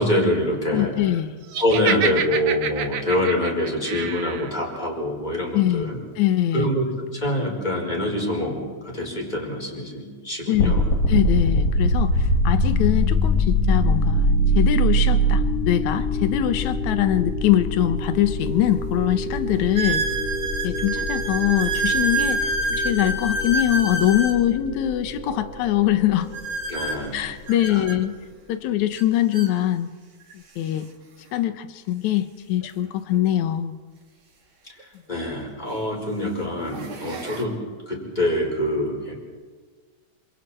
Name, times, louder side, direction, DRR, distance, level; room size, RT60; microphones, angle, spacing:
voice 1, 0.0-0.9 1.6-6.0 6.5-10.8 26.7-27.2 27.7-27.8 35.1-37.6 37.9-39.2, left 1 dB, 15° left, -1 dB, 5.1 m, -25 dB
voice 2, 0.7-1.5 5.5-6.7 10.5-10.7 11.1-20.0 20.6-26.3 27.1-28.2 28.5-29.9 30.3-30.9 31.3-33.7, left 12 dB, 75° left, 11 dB, 2.4 m, -23 dB
Laughter, 1.5-4.5, right 8 dB, 65° right, 2.2 m, -28 dB
sound 1, 10.6-27.5, equal, 55° left, 3.7 m, -24 dB
sound 2, 18.0-18.1 18.8-18.9 19.7-24.4 26.3-28.0 29.0-29.1 29.3-29.5 30.3-30.4 32.6-32.7 34.8-34.9 35.6-35.9 36.5-37.4, right 2 dB, 45° right, 3.0 m, -27 dB
27.5 x 26.5 x 4.5 m, 1.5 s
omnidirectional pair, 3.5 m